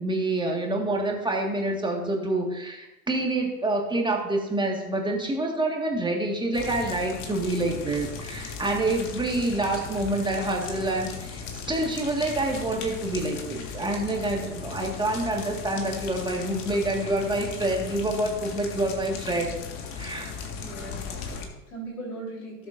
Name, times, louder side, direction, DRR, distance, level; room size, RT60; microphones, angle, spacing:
voice 1, 0.0-19.5 20.0-20.3, right 2 dB, 10° right, 1 dB, 1.8 m, -27 dB
sound 1, 6.5-21.5, left 5 dB, 45° left, 1.8 m, -37 dB
voice 2, 20.6-22.7, right 2 dB, 80° left, -2 dB, 4.1 m, -39 dB
18.0 x 7.4 x 2.6 m, 1.0 s
figure-of-eight pair, 85°, 43 cm